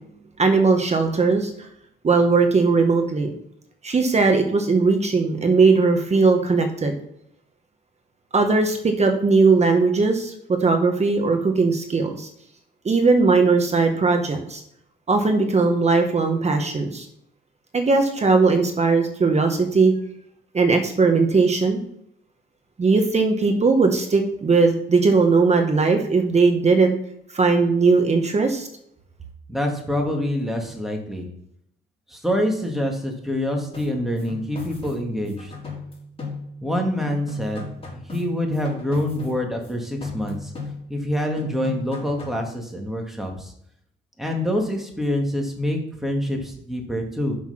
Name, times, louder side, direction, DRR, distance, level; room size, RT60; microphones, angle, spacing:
voice 1, 0.4-1.7 2.0-3.3 3.8-7.0 8.3-12.3 12.8-14.6 15.1-17.1 17.7-19.9 20.5-21.8 22.8-26.9 27.3-28.7, right 4 dB, 35° right, 5 dB, 1.4 m, -19 dB
voice 2, 29.5-31.3 32.1-35.5 36.6-40.5 40.9-43.5 44.2-47.4, left 1 dB, ahead, 1 dB, 2.3 m, -26 dB
sound 1, 33.7-36.7 37.0-39.7 40.0-41.1 41.4-42.5, left 3 dB, 30° left, 3.9 m, -36 dB
7.0 x 6.1 x 5.8 m, 0.73 s
cardioid pair, 90°, 20 cm